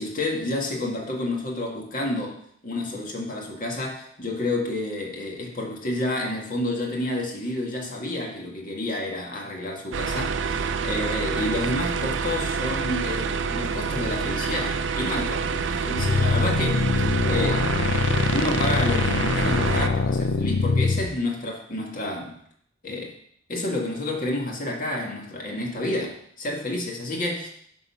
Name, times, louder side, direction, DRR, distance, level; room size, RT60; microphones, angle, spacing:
voice 1, 0.0-2.4 2.6-17.7 18.3-22.4 22.8-23.2 23.5-27.5, left 1 dB, 45° left, 0 dB, 1.9 m, -30 dB
sound 1, 9.9-19.9, right 5 dB, 75° right, 0.5 m, -27 dB
sound 2, 16.0-21.1, left 3 dB, 75° left, 0.6 m, -23 dB
11.0 x 4.0 x 5.8 m, 0.66 s
head